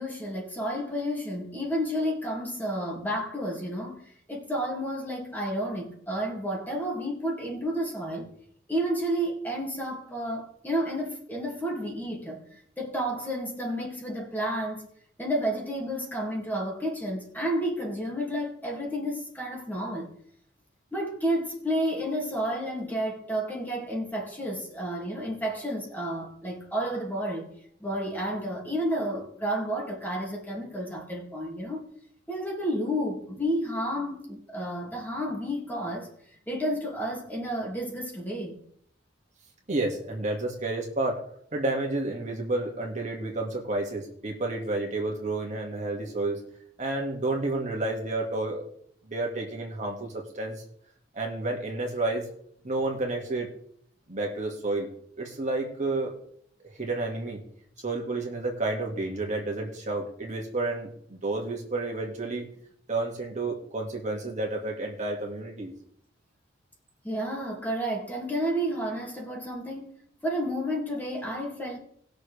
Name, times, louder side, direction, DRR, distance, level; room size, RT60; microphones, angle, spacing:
voice 1, 0.0-8.3 8.7-12.4 12.8-14.9 15.2-20.2 20.9-27.5 27.8-31.8 32.3-36.1 36.5-38.6 67.0-69.9 70.2-71.8, equal, 10° left, 2.3 m, -31 dB
voice 2, 39.7-41.2 41.5-46.4 46.8-48.6 49.0-50.6 51.1-52.3 52.6-53.5 54.1-54.9 55.2-56.2 56.6-57.4 57.8-62.5 62.9-65.7, right 2 dB, 40° right, 2.0 m, -30 dB
20.0 x 6.7 x 3.4 m
head